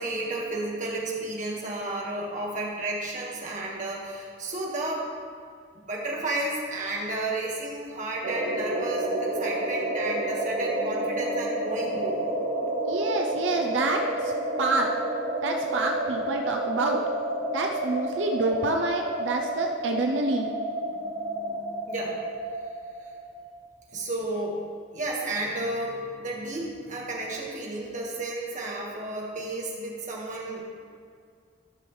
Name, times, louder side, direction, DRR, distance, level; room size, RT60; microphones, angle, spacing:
voice 1, 0.0-5.1 5.9-12.2 20.9-22.2 23.9-24.6 24.9-30.6, right 2 dB, 40° right, -3 dB, 1.7 m, -32 dB
sound 1, 8.2-23.6, right 1 dB, 60° right, 1.4 m, -30 dB
voice 2, 12.9-14.3 14.6-14.9 15.4-17.0 17.5-20.5, right 3 dB, 85° right, 2 dB, 0.6 m, -27 dB
13.0 x 6.2 x 3.2 m, 2.2 s
head